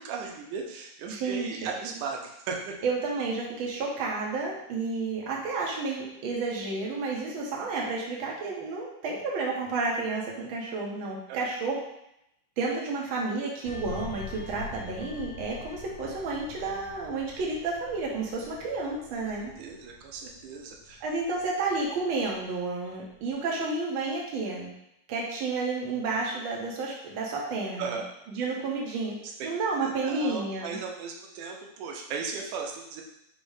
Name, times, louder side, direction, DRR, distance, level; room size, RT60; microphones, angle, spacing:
voice 1, 0.0-2.7 11.3-11.5 19.6-21.0 27.8-28.1 29.4-29.5 29.8-33.0, right 5 dB, 90° right, 1 dB, 2.1 m, -36 dB
voice 2, 1.1-1.5 2.8-11.8 12.6-19.5 21.0-24.7 25.1-28.0 28.3-29.2 29.4-30.8, right 3 dB, 70° right, -2 dB, 1.2 m, -31 dB
sound 1, 13.6-22.7 23.0-23.3, left 5 dB, 85° left, 2.0 m, -45 dB
5.2 x 2.1 x 4.7 m, 0.81 s
omnidirectional pair, 3.4 m